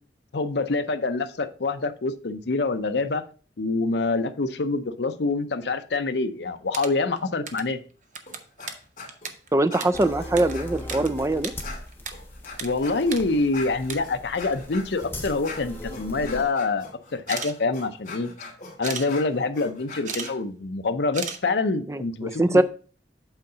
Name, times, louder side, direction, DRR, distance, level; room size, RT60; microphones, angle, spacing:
voice 1, 0.3-3.2 3.6-7.8 12.6-18.3 18.8-22.6, left 3 dB, 70° left, 9 dB, 0.6 m, -26 dB
sound 1, 6.5-7.7 8.0-11.1 11.3-12.1 12.4-12.7 13.0-13.2 13.6-14.0 15.0-15.1 15.4-16.1 17.2-17.5 18.8-19.1 19.8-20.3 20.6-20.7 21.1-21.4, right 6 dB, 45° right, 0.7 m, -35 dB
sound 2, 8.3-8.7 9.0-9.3 9.7-11.3 11.6-20.3, left 4 dB, 40° left, 2.3 m, -42 dB
voice 2, 9.5-11.5 21.9-22.6, right 1 dB, 15° right, 13 dB, 0.3 m, -22 dB
sound 3, 9.9-16.4, left 1 dB, 15° left, 1.0 m, -39 dB
8.1 x 3.9 x 5.5 m, 0.40 s
head